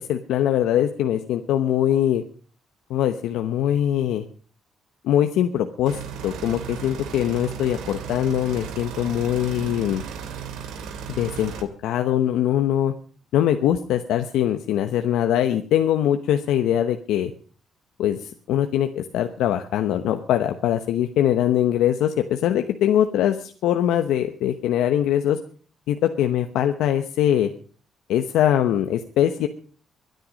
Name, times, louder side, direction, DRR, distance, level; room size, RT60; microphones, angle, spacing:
voice 1, 0.0-2.2 2.9-4.2 5.0-10.0 11.1-11.5 11.8-12.9 13.3-17.3 18.0-25.4 25.9-27.5 28.1-29.5, left 11 dB, 90° left, 7 dB, 0.9 m, -22 dB
sound 1, 5.9-11.6, right 7 dB, 85° right, 2.2 m, -35 dB
23.0 x 9.3 x 5.2 m, 0.43 s
cardioid pair, 90°, 0 cm